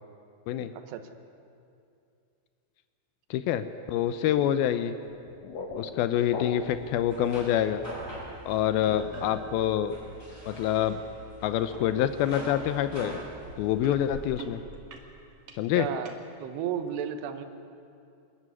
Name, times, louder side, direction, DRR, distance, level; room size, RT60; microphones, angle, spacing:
voice 1, 3.3-4.9 5.7-7.8 8.5-10.0 10.5-11.0 11.4-13.2 13.6-14.6 15.6-15.9, left 11 dB, 90° left, 11 dB, 2.1 m, -26 dB
sound 1, 5.0-7.0, left 4 dB, 55° left, 2.0 m, -39 dB
sound 2, 6.6-14.3, right 1 dB, 15° left, 7.3 m, -43 dB
sound 3, 11.7-11.9 12.2-12.6 13.1-16.2 16.9-17.0, right 4 dB, 50° right, 2.4 m, -46 dB
voice 2, 15.7-16.1 16.4-17.4, right 9 dB, 75° right, 8 dB, 3.1 m, -33 dB
25.0 x 14.0 x 9.7 m, 2.5 s
omnidirectional pair, 5.2 m